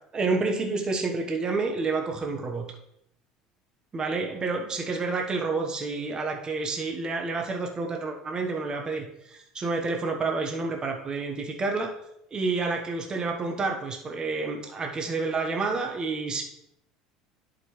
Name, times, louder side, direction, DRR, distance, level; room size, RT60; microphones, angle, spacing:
voice 1, 0.1-2.7 3.9-11.9 12.3-16.4, right 3 dB, 30° right, 3 dB, 1.2 m, -29 dB
11.0 x 5.1 x 3.2 m, 0.77 s
hypercardioid pair, 80°, 3 cm